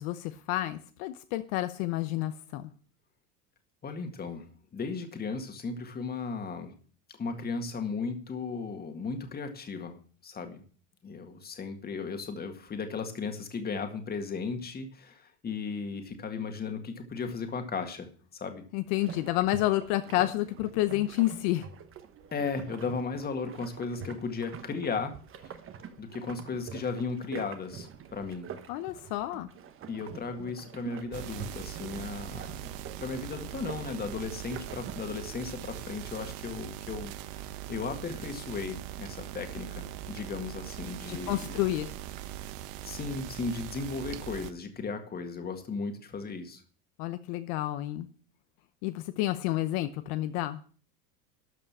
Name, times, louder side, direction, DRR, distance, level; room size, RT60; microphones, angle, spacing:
voice 1, 0.0-2.7 18.7-21.7 28.7-29.5 41.1-41.9 47.0-48.1 48.8-50.6, left 16 dB, 65° left, 10 dB, 0.9 m, -30 dB
voice 2, 3.8-4.5 4.7-6.7 7.1-10.0 10.2-10.6 11.0-18.6 22.3-25.1 25.4-25.5 26.0-28.5 29.9-41.6 42.8-46.6, left 4 dB, 20° left, 6 dB, 1.9 m, -36 dB
sound 1, 19.0-35.1, right 7 dB, 30° right, 1.1 m, -46 dB
sound 2, 31.1-44.5, right 13 dB, 55° right, 1.0 m, -41 dB
13.0 x 5.5 x 7.3 m, 0.42 s
supercardioid pair, 135°, 43 cm